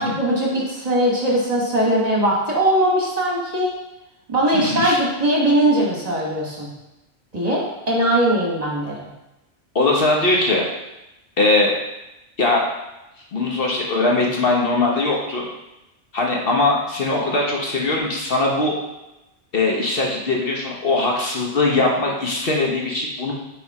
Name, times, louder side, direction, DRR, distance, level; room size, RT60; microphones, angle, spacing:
voice 1, 0.0-3.7 4.3-6.7 7.3-9.1, right 1 dB, 35° right, -4 dB, 1.4 m, -20 dB
voice 2, 4.5-5.0 9.7-10.7 11.4-11.7 12.4-12.7 13.3-15.5 16.1-18.7 19.5-23.3, left 2 dB, 50° left, -2 dB, 1.1 m, -20 dB
6.8 x 3.6 x 4.7 m, 0.96 s
omnidirectional pair, 1.3 m